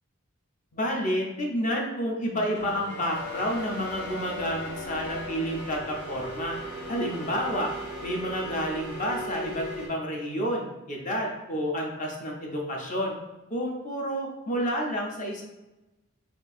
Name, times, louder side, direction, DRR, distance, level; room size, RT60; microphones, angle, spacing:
voice 1, 0.7-6.5 6.9-7.7 8.0-13.1 13.5-15.4, equal, 35° left, 0 dB, 0.6 m, -30 dB
sound 1, 2.5-9.9, equal, 55° left, 1.1 m, -38 dB
4.4 x 2.4 x 2.6 m, 1.0 s
head